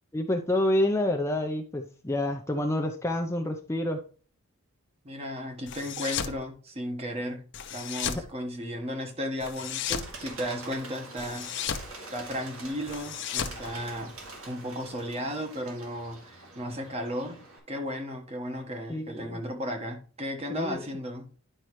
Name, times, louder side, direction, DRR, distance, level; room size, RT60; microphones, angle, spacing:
voice 1, 0.1-4.0 18.9-19.4 20.5-20.8, left 1 dB, 15° left, 0.5 m, -28 dB
voice 2, 5.0-7.4 7.7-11.7 12.1-14.2 14.5-17.4 17.7-21.3, equal, 30° right, 1.2 m, -35 dB
sound 1, 5.7-6.4 7.5-8.3 9.4-10.1 11.2-11.9 12.9-14.4, left 8 dB, 55° left, 0.7 m, -34 dB
Bird, 9.9-17.6, right 2 dB, 70° right, 2.6 m, -45 dB
10.0 x 5.5 x 3.1 m
head